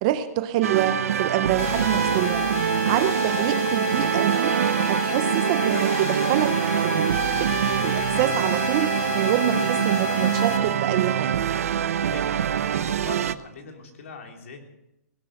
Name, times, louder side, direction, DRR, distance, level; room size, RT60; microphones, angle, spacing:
voice 1, 0.0-4.5 4.9-6.6 6.8-7.1 7.4-8.9 9.1-11.3, right 12 dB, 25° right, 12 dB, 0.6 m, -26 dB
sound 1, 0.6-13.3, right 9 dB, 65° right, 0.7 m, -24 dB
sound 2, 1.6-10.6, left 9 dB, 25° left, 1.2 m, -31 dB
voice 2, 8.7-9.7 12.0-14.6, left 4 dB, 60° left, 3 dB, 3.4 m, -41 dB
18.5 x 11.5 x 6.5 m, 0.89 s
hypercardioid pair, 175°, 8 cm